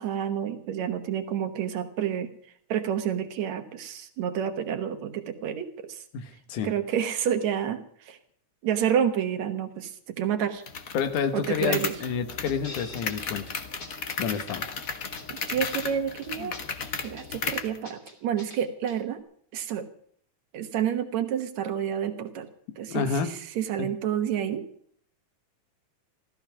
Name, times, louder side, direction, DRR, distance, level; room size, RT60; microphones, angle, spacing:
voice 1, 0.0-2.3 2.7-6.0 6.6-8.2 8.6-10.6 11.3-11.9 15.3-16.6 17.0-19.2 19.5-19.9 20.5-22.5 22.8-24.7, right 9 dB, 70° right, 8 dB, 2.5 m, -29 dB
voice 2, 6.1-6.7 10.9-13.5 14.2-14.6 16.4-16.5 22.9-23.3 23.8-23.9, left 6 dB, 90° left, 9 dB, 2.9 m, -29 dB
sound 1, 10.7-17.8, left 5 dB, 60° left, 0.8 m, -35 dB
sound 2, 12.4-13.2 13.5-13.6 13.8-14.6 14.8-15.9 16.2-17.3 17.5-18.6 18.9-19.0, left 2 dB, 35° left, 3.3 m, -45 dB
15.0 x 14.0 x 6.0 m, 0.62 s
omnidirectional pair, 3.4 m